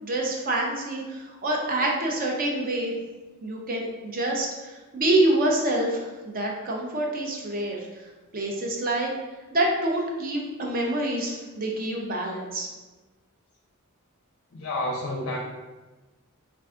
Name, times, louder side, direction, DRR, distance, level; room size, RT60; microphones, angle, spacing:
voice 1, 0.0-2.9 3.4-7.9 8.3-9.1 9.5-12.7, right 1 dB, 40° right, -1 dB, 0.6 m, -26 dB
voice 2, 14.5-15.4, left 1 dB, 55° left, -1 dB, 0.4 m, -29 dB
3.4 x 2.2 x 3.7 m, 1.2 s
head